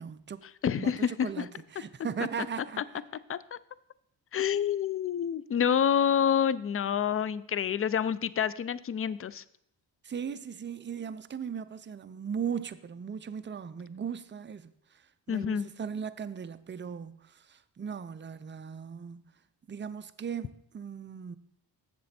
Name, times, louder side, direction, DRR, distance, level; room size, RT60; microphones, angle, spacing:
voice 1, 0.0-0.5 0.8-0.9 1.2-2.8 10.0-19.3 19.7-21.4, right 7 dB, 25° right, 0.5 m, -38 dB
voice 2, 0.6-1.5 2.8-2.9 3.3-3.6 4.3-9.4 15.3-15.7, left 8 dB, 35° left, 0.4 m, -28 dB
7.4 x 6.8 x 4.2 m
cardioid pair, 60°, 45 cm